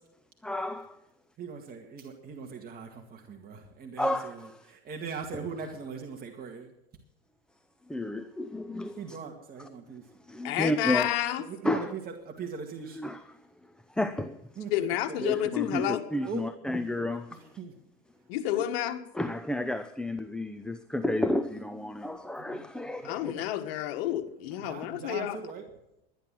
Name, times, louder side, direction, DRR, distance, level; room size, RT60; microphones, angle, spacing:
voice 1, 0.4-1.0 4.0-4.7 7.9-9.2 9.6-9.7 10.3-11.2 11.6-11.9 12.9-13.2 13.9-14.4 15.2-17.6 19.1-23.3 24.6-24.9, left 1 dB, 5° left, 0.6 m, -31 dB
voice 2, 1.4-6.7 9.0-10.0 11.4-13.0 14.6-15.2 16.2-16.4 17.4-17.7 22.4-22.6 23.0-23.5 24.6-25.6, right 5 dB, 30° right, 1.9 m, -40 dB
voice 3, 10.4-11.4 14.7-16.0 18.3-19.0 23.1-25.4, left 12 dB, 70° left, 1.7 m, -30 dB
12.5 x 10.0 x 7.6 m
supercardioid pair, 115°, 30 cm